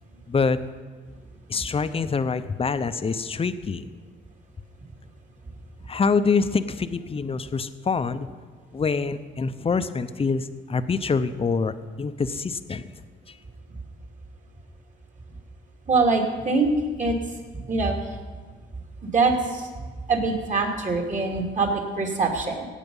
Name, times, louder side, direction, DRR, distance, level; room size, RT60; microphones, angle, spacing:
voice 1, 0.3-0.6 1.5-3.9 5.9-8.3 8.7-12.9 13.3-13.4, left 5 dB, 30° left, 11 dB, 0.7 m, -25 dB
voice 2, 15.9-16.7 17.0-17.2 17.7-18.0 19.1-19.6 20.1-22.7, right 3 dB, 40° right, 2 dB, 2.6 m, -23 dB
17.0 x 8.3 x 5.5 m, 1.5 s
cardioid pair, 90°, 20 cm